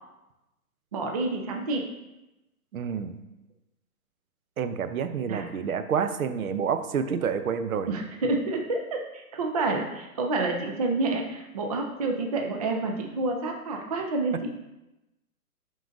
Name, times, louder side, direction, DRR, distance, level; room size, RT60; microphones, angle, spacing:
voice 1, 0.9-1.9 5.2-5.5 7.8-14.5, right 3 dB, 30° right, 3 dB, 0.4 m, -29 dB
voice 2, 2.7-3.2 4.6-7.9, right 7 dB, 65° right, 10 dB, 0.7 m, -28 dB
11.0 x 3.9 x 2.6 m, 0.97 s
figure-of-eight pair, 130°, 45 cm